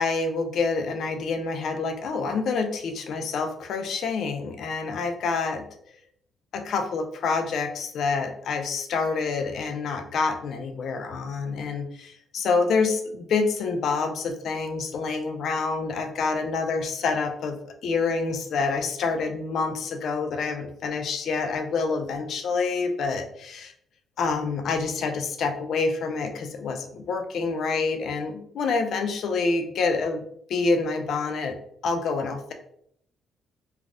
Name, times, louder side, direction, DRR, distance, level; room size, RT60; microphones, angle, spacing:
voice 1, 0.0-5.6 6.5-17.6 17.8-23.7 24.2-30.2 30.5-31.5 31.8-32.5, left 4 dB, 70° left, 5 dB, 0.4 m, -27 dB
3.3 x 2.3 x 2.4 m, 0.69 s
cardioid pair, 90°, 0 cm